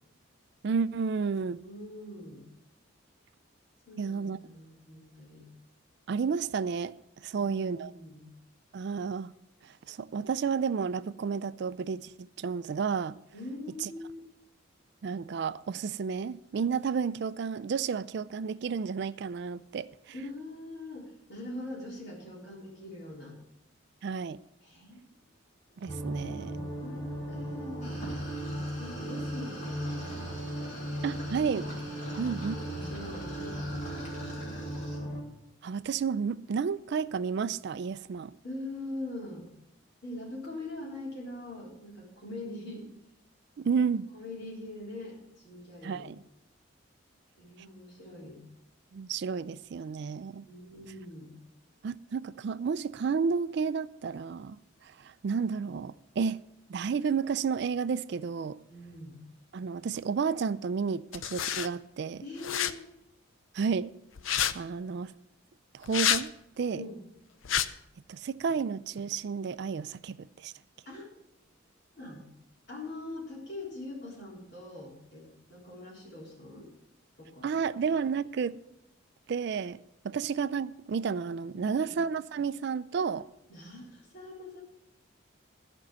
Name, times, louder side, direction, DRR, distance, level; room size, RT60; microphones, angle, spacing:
voice 1, 0.6-1.6 4.0-4.4 6.1-6.9 7.2-7.9 8.7-9.3 9.6-13.2 13.8-13.9 15.0-19.9 24.0-24.4 25.8-26.7 28.5-28.7 31.0-31.7 32.2-32.5 35.6-38.3 43.6-44.1 45.8-46.2 48.9-50.4 51.8-56.4 56.7-58.6 59.5-62.2 63.5-63.9 64.3-65.1 65.7-66.8 68.1-70.5 77.4-78.6 79.3-79.8 80.0-83.2, right 6 dB, 55° right, 0.3 m, -31 dB
voice 2, 1.6-2.5 3.9-5.5 7.3-8.3 13.3-14.2 20.1-23.4 24.6-25.1 25.7-25.9 26.8-28.0 28.8-30.0 32.1-34.9 38.4-39.5 40.0-42.9 44.1-46.1 47.4-48.4 50.4-51.3 58.7-59.2 62.2-62.8 66.7-67.0 70.9-71.2 71.9-72.2 72.7-76.7 77.2-77.6 81.5-81.9 83.5-84.6, left 2 dB, 55° left, 3.7 m, -43 dB
sound 1, 25.9-35.2, right 1 dB, 15° left, 2.6 m, -37 dB
sound 2, 27.8-35.0, left 1 dB, 35° left, 3.0 m, -46 dB
sound 3, 61.1-61.7 62.4-62.7 64.2-64.5 65.8-66.2 67.4-67.7, left 10 dB, 75° left, 0.6 m, -28 dB
13.5 x 5.3 x 7.4 m
head